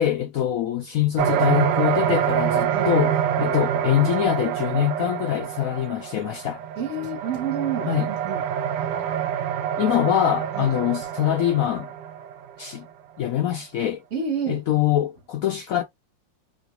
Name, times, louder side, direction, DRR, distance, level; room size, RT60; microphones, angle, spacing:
voice 1, 0.0-3.1 3.4-6.6 7.9-8.1 9.8-11.9 12.6-12.9 13.2-14.0 14.5-15.8, left 11 dB, 70° left, 0.8 m, -23 dB
sound 1, 1.2-12.6, right 9 dB, 75° right, 1.2 m, -26 dB
voice 2, 6.8-8.4 10.5-10.7 14.1-14.6, right 6 dB, 50° right, 1.0 m, -29 dB
2.9 x 2.9 x 2.9 m
omnidirectional pair, 2.0 m